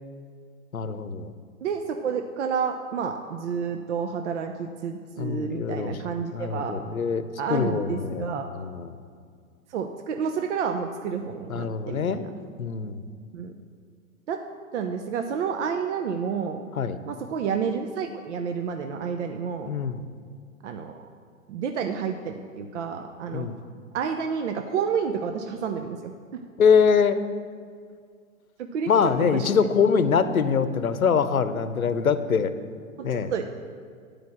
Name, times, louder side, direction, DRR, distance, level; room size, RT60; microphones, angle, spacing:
voice 1, 0.7-1.3 5.2-6.0 6.3-9.0 11.5-12.2 12.6-13.0 16.8-17.0 19.7-20.0 23.3-23.6 26.6-27.2 28.9-32.5 33.0-33.3, left 6 dB, 90° left, 12 dB, 0.7 m, -24 dB
voice 2, 1.6-6.7 7.4-8.5 9.7-12.3 13.3-13.5 14.3-14.4 14.7-16.6 17.1-19.7 20.6-21.1 21.5-23.5 23.9-26.4 28.6-28.9 29.2-29.7 33.0-33.4, right 6 dB, 60° right, 6 dB, 0.7 m, -30 dB
9.7 x 5.1 x 7.2 m, 2.1 s
figure-of-eight pair, 115°, 41 cm